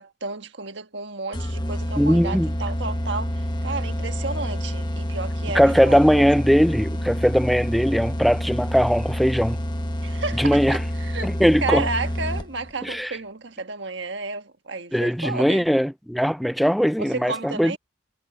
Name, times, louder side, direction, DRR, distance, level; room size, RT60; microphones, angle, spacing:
voice 1, 0.0-6.3 10.0-11.3 11.6-15.7 17.0-17.8, right 3 dB, 65° right, 1.5 m, -32 dB
sound 1, 1.3-12.7, equal, 25° left, 1.2 m, -28 dB
voice 2, 2.0-2.5 5.5-9.6 10.4-10.8 11.2-11.9 12.8-13.1 14.9-17.8, equal, ahead, 0.4 m, -20 dB
head